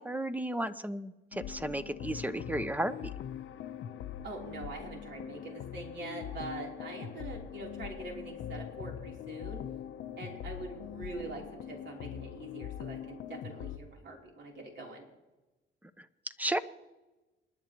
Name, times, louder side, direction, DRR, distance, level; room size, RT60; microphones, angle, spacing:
voice 1, 0.0-2.9 16.0-16.1 16.4-16.6, right 1 dB, 10° right, 12 dB, 0.8 m, -33 dB
sound 1, 1.3-13.8, left 10 dB, 75° left, 0.8 m, -42 dB
voice 2, 4.2-9.6 10.2-15.1, right 2 dB, 65° right, -1 dB, 3.5 m, -44 dB
28.5 x 10.5 x 3.0 m, 1.1 s
cardioid pair, 90°, 20 cm